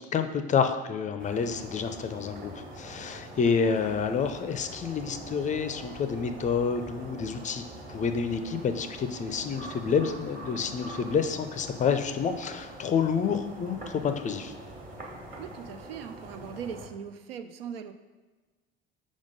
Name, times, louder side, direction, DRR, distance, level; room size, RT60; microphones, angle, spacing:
voice 1, 0.0-14.5, left 6 dB, 25° left, 8 dB, 0.4 m, -29 dB
sound 1, 1.2-16.9, right 1 dB, 25° right, 1.4 m, -44 dB
voice 2, 15.4-17.9, right 7 dB, 70° right, 9 dB, 0.5 m, -40 dB
5.0 x 3.5 x 5.2 m, 1.3 s
figure-of-eight pair, 60°, 30 cm